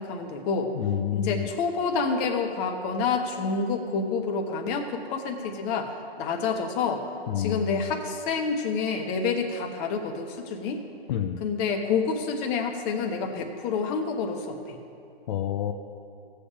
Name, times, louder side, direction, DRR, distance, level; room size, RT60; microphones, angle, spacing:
voice 1, 0.0-0.7 1.1-5.9 6.2-7.0 7.4-10.8 11.4-14.8, left 5 dB, 30° left, 3 dB, 1.1 m, -28 dB
voice 2, 0.7-1.5 7.3-7.9 11.1-11.4 15.3-15.7, left 11 dB, 45° left, 5 dB, 0.6 m, -28 dB
17.0 x 7.2 x 3.4 m, 2.5 s
hypercardioid pair, 135°, 32 cm